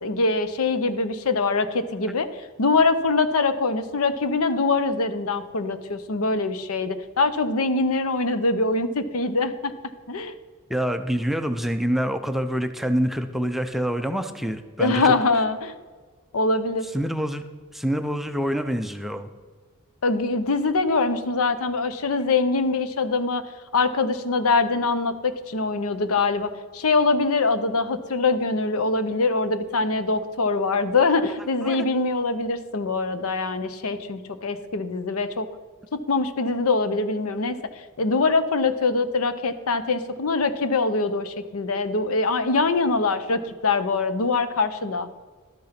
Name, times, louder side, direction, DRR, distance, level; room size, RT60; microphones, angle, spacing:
voice 1, 0.0-9.7 10.1-10.4 14.8-15.7 16.3-16.8 20.0-23.4 23.7-35.5 35.9-45.1, left 3 dB, 75° left, 11 dB, 0.7 m, -23 dB
voice 2, 10.7-15.1 16.9-17.4 17.7-19.3 31.2-31.3 31.6-31.8, equal, ahead, 7 dB, 0.5 m, -26 dB
12.0 x 6.7 x 5.8 m, 1.4 s
head